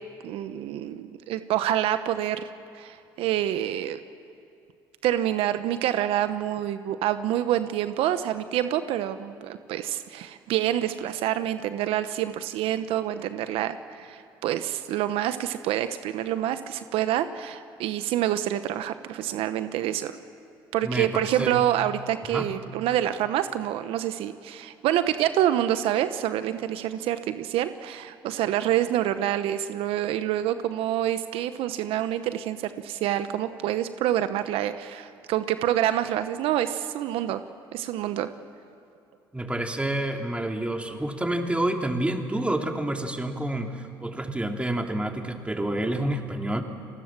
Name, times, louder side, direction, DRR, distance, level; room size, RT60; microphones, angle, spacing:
voice 1, 0.2-2.5 2.7-4.0 5.0-20.2 20.7-37.4 37.7-38.3, right 12 dB, 75° right, 11 dB, 0.9 m, -27 dB
voice 2, 20.8-21.6 22.3-22.5 39.3-46.6, right 1 dB, 10° right, 3 dB, 2.9 m, -28 dB
30.0 x 20.0 x 7.5 m, 2.6 s
supercardioid pair, 65°, 10 cm